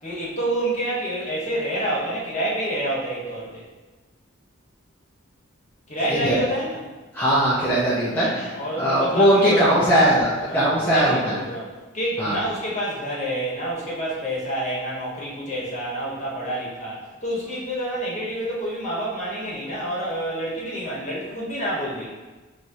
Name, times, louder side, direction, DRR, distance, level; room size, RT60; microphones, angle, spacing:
voice 1, 0.0-3.7 5.9-6.8 8.1-9.7 10.5-22.1, right 1 dB, 35° left, -6 dB, 1.2 m, -28 dB
voice 2, 7.1-11.4 12.2-12.4, equal, 10° left, -10 dB, 0.7 m, -20 dB
6.1 x 3.1 x 2.7 m, 1.2 s
head